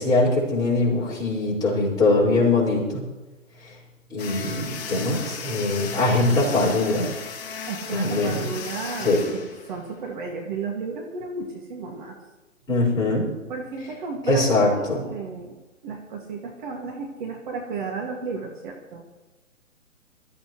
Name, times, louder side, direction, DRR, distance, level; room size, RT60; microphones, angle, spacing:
voice 1, 0.0-3.0 4.1-7.1 7.9-8.4 9.0-9.2 12.7-13.3 14.3-15.0, left 2 dB, 10° left, -7 dB, 5.6 m, -22 dB
sound 1, 4.2-10.2, left 6 dB, 30° left, 2.2 m, -36 dB
voice 2, 7.7-12.2 13.5-15.6 15.8-19.0, right 4 dB, 35° right, 0 dB, 2.1 m, -33 dB
23.5 x 14.0 x 3.2 m, 1.1 s
figure-of-eight pair, 140°, 40 cm